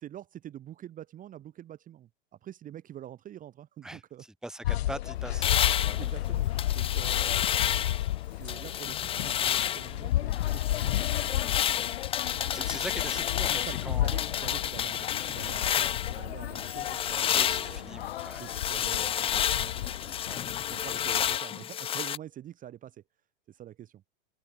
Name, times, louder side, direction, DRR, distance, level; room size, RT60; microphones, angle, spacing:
voice 1, 0.0-2.1 2.4-4.2 6.0-7.4 8.3-11.6 13.3-18.1 18.4-20.2 20.5-23.0 23.5-24.0, right 11 dB, 25° right, 1.0 m, -46 dB
voice 2, 4.4-6.0 11.3-11.6 12.4-14.4 17.3-18.4 20.2-20.4, right 1 dB, ahead, 1.3 m, -42 dB
sound 1, 4.6-21.4, left 14 dB, 85° left, 0.6 m, -33 dB
sound 2, 5.1-16.0, left 38 dB, 50° left, 6.0 m, -48 dB
sound 3, 5.4-8.1 8.5-9.9 10.3-16.2 16.6-22.2, left 10 dB, 20° left, 0.5 m, -30 dB
hypercardioid pair, 120°, 31 cm